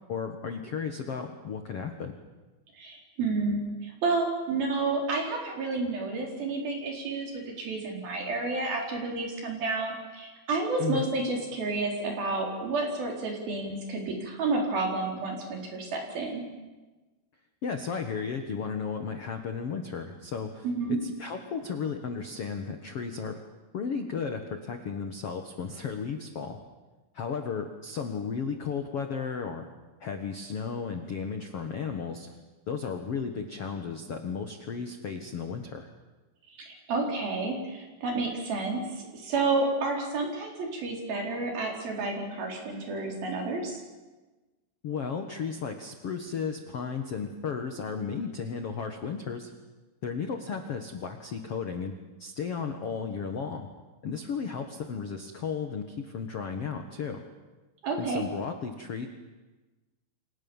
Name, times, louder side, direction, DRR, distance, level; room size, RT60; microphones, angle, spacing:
voice 1, 0.1-2.2 10.8-11.1 17.6-23.4 23.7-26.6 27.1-29.7 30.0-32.3 32.7-35.9 44.8-49.5 50.0-51.9 52.2-53.7 54.0-57.2 58.0-59.1, left 6 dB, 80° left, 5 dB, 1.3 m, -34 dB
voice 2, 2.8-16.4 20.6-21.0 36.5-43.8 57.8-58.2, right 3 dB, 55° right, 1 dB, 5.9 m, -30 dB
29.5 x 25.0 x 7.3 m, 1.2 s
omnidirectional pair, 5.3 m